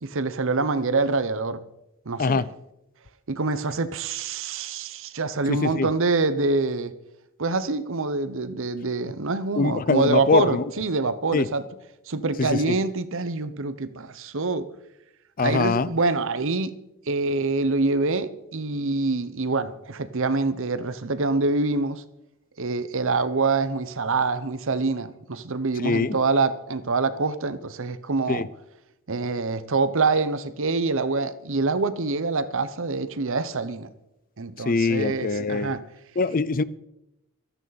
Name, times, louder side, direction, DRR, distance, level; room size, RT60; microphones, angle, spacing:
voice 1, 0.0-1.6 2.1-2.4 3.3-6.9 7.4-11.6 12.1-14.7 15.4-16.7 17.1-22.0 22.6-28.5 29.1-33.9 34.4-35.8, right 3 dB, 65° right, 0.9 m, -25 dB
voice 2, 5.5-5.9 9.6-10.6 11.3-11.5 12.4-12.8 15.4-15.9 25.8-26.2 28.3-28.5 34.7-35.7 36.2-36.6, left 4 dB, 40° left, 0.6 m, -23 dB
25.0 x 9.1 x 4.1 m
head